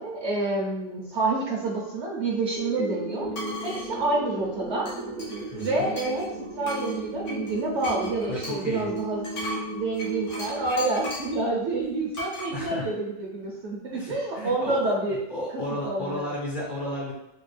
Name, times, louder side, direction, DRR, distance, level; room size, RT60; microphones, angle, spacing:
voice 1, 0.0-3.3 3.6-4.9 5.6-9.3 9.7-15.2 15.9-16.3, right 2 dB, 70° right, -5 dB, 1.1 m, -28 dB
sound 1, 2.6-11.6, right 2 dB, 55° right, 0.6 m, -35 dB
sound 2, 3.3-3.9 4.9-6.3 6.6-11.4 12.1-12.5, equal, 80° left, 1.5 m, -37 dB
voice 2, 5.5-5.9 8.3-8.9 12.5-12.9 13.9-15.0 15.3-17.1, left 1 dB, 45° left, -5 dB, 0.9 m, -33 dB
4.4 x 2.3 x 3.2 m, 0.89 s
omnidirectional pair, 1.3 m